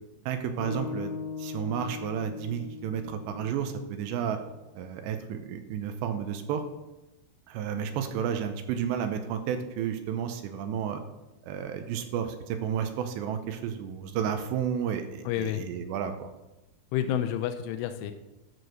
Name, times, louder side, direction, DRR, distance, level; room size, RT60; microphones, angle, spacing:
voice 1, 0.3-1.1 1.4-4.4 4.8-6.6 7.5-11.0 11.4-16.3, right 8 dB, 80° right, 7 dB, 2.8 m, -32 dB
sound 1, 0.6-4.8, left 6 dB, 70° left, 2.1 m, -40 dB
voice 2, 15.3-15.6 16.9-18.1, left 10 dB, 90° left, 8 dB, 3.1 m, -29 dB
12.0 x 4.8 x 6.3 m, 1.0 s
omnidirectional pair, 5.4 m